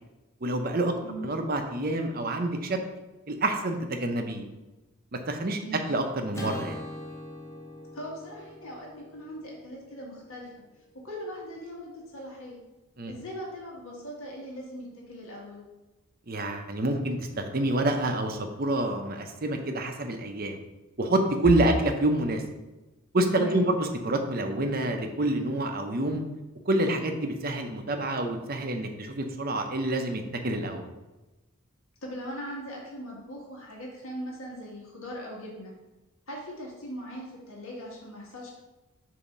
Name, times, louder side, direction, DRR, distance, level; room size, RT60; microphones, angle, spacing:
voice 1, 0.4-0.9 1.2-2.8 3.3-4.4 5.3-5.6 5.9-6.8 13.0-13.1 16.3-20.5 21.0-22.4 23.1-26.2 26.7-30.9, right 1 dB, 40° right, 5 dB, 0.7 m, -27 dB
voice 2, 5.6-6.0 7.9-10.5 11.0-12.6 13.1-15.6 23.3-23.7 32.0-35.7 36.3-38.5, equal, 70° left, -2 dB, 1.7 m, -40 dB
Acoustic guitar / Strum, 6.3-10.8, left 1 dB, 10° left, 1.2 m, -42 dB
7.0 x 2.8 x 5.3 m, 1.1 s
head